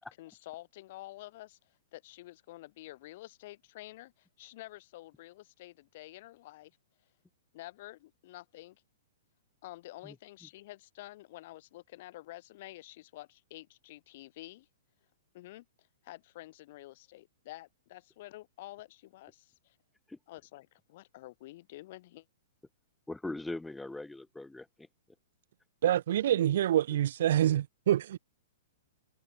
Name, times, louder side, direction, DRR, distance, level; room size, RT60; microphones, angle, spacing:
voice 1, 0.0-6.8 7.5-8.8 9.6-14.7 15.3-19.8 20.3-22.2, left 17 dB, 55° left, 7.8 m, -49 dB
voice 2, 23.1-24.9, left 2 dB, 5° left, 2.1 m, -40 dB
voice 3, 25.8-28.2, right 11 dB, 65° right, 0.8 m, -26 dB
hypercardioid pair, 120°, 0 cm